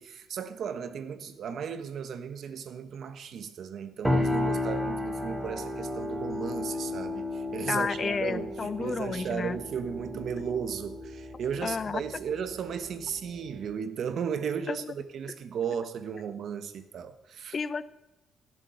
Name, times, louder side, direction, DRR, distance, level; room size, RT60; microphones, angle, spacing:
voice 1, 0.0-17.6, right 7 dB, 65° right, 1.3 m, -35 dB
sound 1, 4.0-13.8, left 1 dB, 10° right, 2.4 m, -33 dB
voice 2, 7.7-9.6 11.6-12.0 14.7-14.8 17.5-17.8, left 5 dB, 40° left, 0.6 m, -31 dB
16.0 x 7.5 x 7.9 m
cardioid pair, 90°, 0 cm